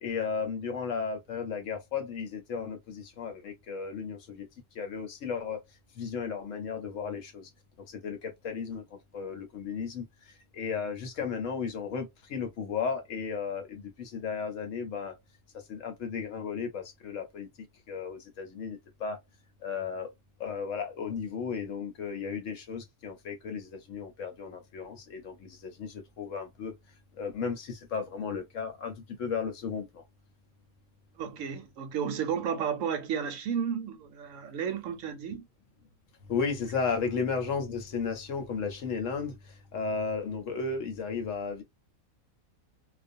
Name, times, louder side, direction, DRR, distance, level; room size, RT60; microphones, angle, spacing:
voice 1, 0.0-4.5 4.7-5.6 6.0-7.5 7.9-8.8 9.1-15.1 15.7-17.5 17.9-19.2 19.6-20.1 20.4-26.7 27.2-30.0 36.3-41.6, left 5 dB, 65° left, 1.0 m, -34 dB
voice 2, 31.2-35.5, right 7 dB, 70° right, 0.9 m, -32 dB
2.4 x 2.3 x 2.6 m
omnidirectional pair, 1.5 m